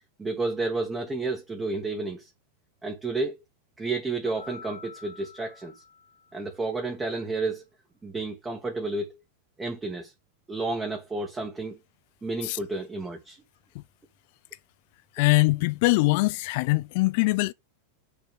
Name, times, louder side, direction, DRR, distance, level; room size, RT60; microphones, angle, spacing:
voice 1, 0.2-2.3 2.8-3.4 3.8-5.7 6.3-7.6 8.0-9.2 9.6-10.1 10.5-11.8 12.2-13.4, right 3 dB, 15° right, 1.5 m, -31 dB
Keyboard (musical), 4.2-6.6, left 5 dB, 80° right, 1.4 m, -48 dB
voice 2, 15.2-17.5, left 23 dB, 50° left, 0.5 m, -22 dB
7.1 x 4.5 x 6.7 m
figure-of-eight pair, 90°, 0 cm